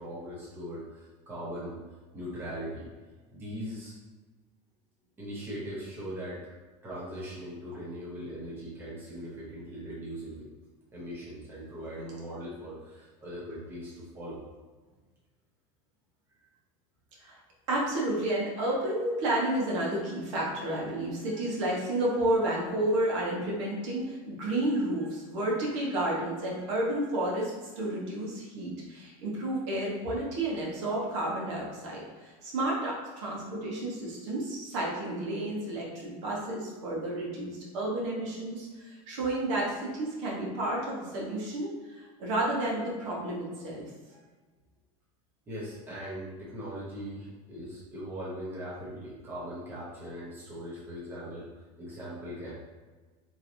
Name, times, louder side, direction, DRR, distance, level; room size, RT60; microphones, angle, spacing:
voice 1, 0.0-1.7 2.1-2.9 3.3-3.9 5.2-10.5 10.9-14.4 45.5-52.5, equal, 15° right, -7 dB, 0.9 m, -40 dB
voice 2, 17.7-43.8, right 1 dB, 85° right, -3 dB, 1.2 m, -31 dB
4.4 x 3.0 x 2.6 m, 1.4 s
cardioid pair, 180°, 15 cm